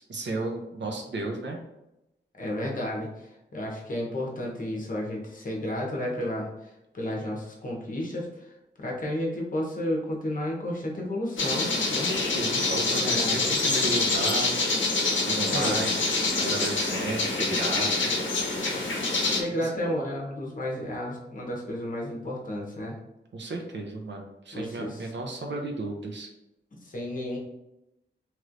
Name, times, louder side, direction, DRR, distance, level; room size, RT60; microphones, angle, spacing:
voice 1, 0.1-1.6 12.0-14.6 15.3-18.1 19.5-20.0 23.3-26.3, right 2 dB, 70° right, 3 dB, 0.6 m, -33 dB
voice 2, 2.4-6.5 6.9-8.5 8.8-12.1 13.0-13.5 15.5-15.9 19.3-23.0 24.5-25.1 26.7-27.4, left 1 dB, 45° left, -2 dB, 0.9 m, -32 dB
sound 1, 11.4-19.4, left 3 dB, 90° left, 0.6 m, -26 dB
3.1 x 3.0 x 2.5 m, 0.90 s
wide cardioid pair, 85°, 19 cm